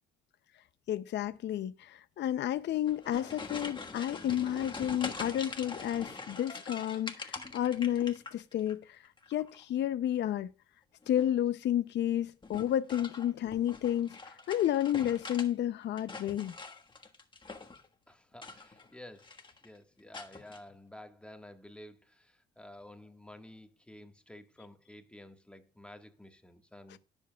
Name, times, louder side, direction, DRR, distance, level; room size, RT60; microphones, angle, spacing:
voice 1, 0.9-9.0 9.3-10.5 11.1-16.5, left 11 dB, 60° left, 0.6 m, -31 dB
sound 1, 2.7-8.7 9.0-9.6 11.0-11.4 12.4-15.5 15.8-17.9 18.3-18.9 19.2-19.7 20.1-20.6, left 3 dB, 25° left, 1.4 m, -44 dB
voice 2, 18.1-19.3 19.6-27.0, left 1 dB, 5° left, 1.5 m, -51 dB
18.0 x 7.2 x 2.3 m
cardioid pair, 90°, 20 cm